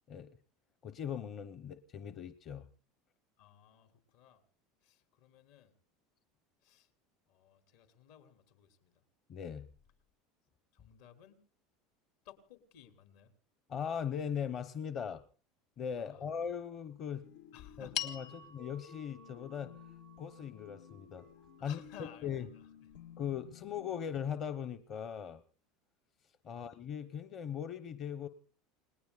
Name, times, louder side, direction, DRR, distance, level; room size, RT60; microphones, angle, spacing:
voice 1, 0.8-2.7 9.3-9.6 13.7-15.2 15.8-17.2 17.8-19.7 20.2-21.3 21.6-21.8 22.2-22.4 23.2-25.4 26.4-28.3, left 8 dB, 30° left, 0.9 m, -39 dB
voice 2, 3.4-4.4 4.8-5.7 6.6-6.9 7.3-9.0 10.7-11.4 12.2-13.3 16.0-16.3 17.5-18.4 21.6-22.7 26.4-26.7, left 9 dB, 70° left, 3.7 m, -57 dB
sound 1, 17.2-24.5, left 10 dB, 85° left, 1.9 m, -55 dB
sound 2, 17.9-22.4, left 10 dB, 50° left, 2.1 m, -46 dB
29.5 x 19.5 x 2.4 m
cardioid pair, 160°, 0 cm